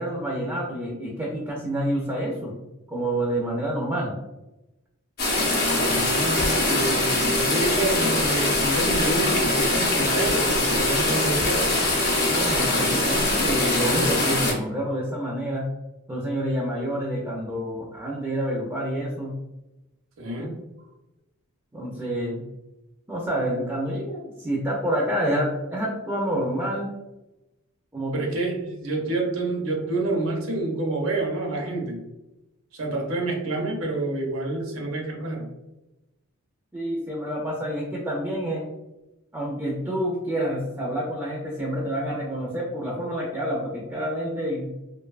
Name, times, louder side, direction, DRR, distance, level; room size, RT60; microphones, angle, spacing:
voice 1, 0.0-2.5 2.9-4.1 12.3-15.7 16.1-19.3 20.4-20.5 21.7-22.4 23.1-26.9 27.9-28.1 36.7-38.7 39.3-44.7, right 1 dB, 10° right, -3 dB, 0.3 m, -28 dB
sound 1, 5.2-14.5, left 2 dB, 45° left, 0.7 m, -22 dB
voice 2, 5.7-11.7 20.2-20.5 28.1-32.0 32.7-35.5, right 2 dB, 65° right, 0 dB, 0.6 m, -28 dB
2.5 x 2.2 x 2.3 m, 0.98 s
head